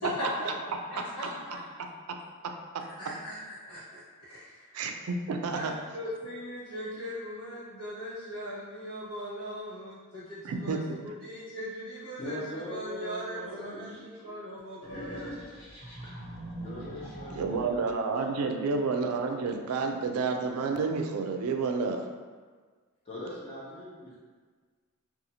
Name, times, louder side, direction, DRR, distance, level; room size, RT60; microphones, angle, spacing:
voice 1, 0.0-1.6 3.0-4.6 5.5-15.3, equal, 90° left, -14 dB, 1.1 m, -39 dB
voice 2, 4.7-5.7 10.4-11.1 17.4-22.0, right 4 dB, 75° right, 4 dB, 0.3 m, -30 dB
voice 3, 12.2-14.3 16.6-18.7 18.9-19.6 23.1-24.2, equal, 25° left, -6 dB, 0.7 m, -42 dB
sound 1, 14.8-17.9, right 1 dB, 55° left, 1.2 m, -42 dB
2.7 x 2.4 x 2.7 m, 1.5 s
head